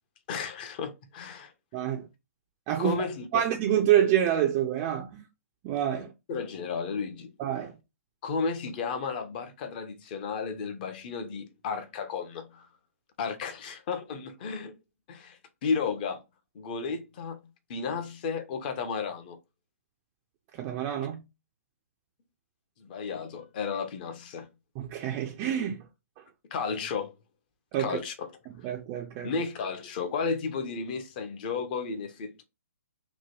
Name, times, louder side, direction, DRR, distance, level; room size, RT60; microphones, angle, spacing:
voice 1, 0.3-1.5 2.8-3.5 6.3-7.3 8.2-12.7 13.2-14.7 15.1-16.2 16.5-17.4 17.7-19.4 22.8-24.5 26.5-27.1 27.8-28.3 29.2-32.4, left 5 dB, 35° left, 0.6 m, -33 dB
voice 2, 1.7-2.1 2.7-3.0 3.3-5.3 5.6-6.1 7.4-7.7 20.5-21.2 24.8-25.8 26.2-26.3 27.7-28.0 28.6-29.3, right 10 dB, 25° right, 0.3 m, -27 dB
2.9 x 2.2 x 2.8 m
figure-of-eight pair, 135°, 8 cm